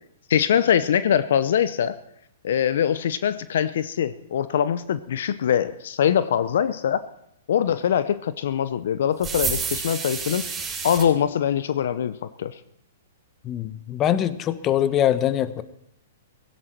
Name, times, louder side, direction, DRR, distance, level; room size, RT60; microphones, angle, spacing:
voice 1, 0.3-2.0 2.4-7.0 7.5-10.5 10.8-12.6, left 9 dB, 65° left, 14 dB, 0.7 m, -23 dB
sound 1, 9.2-11.1, right 5 dB, 20° right, 5.9 m, -29 dB
voice 2, 13.4-15.6, left 11 dB, 30° left, 14 dB, 1.0 m, -23 dB
17.0 x 16.0 x 4.6 m, 0.77 s
hypercardioid pair, 125°, 0 cm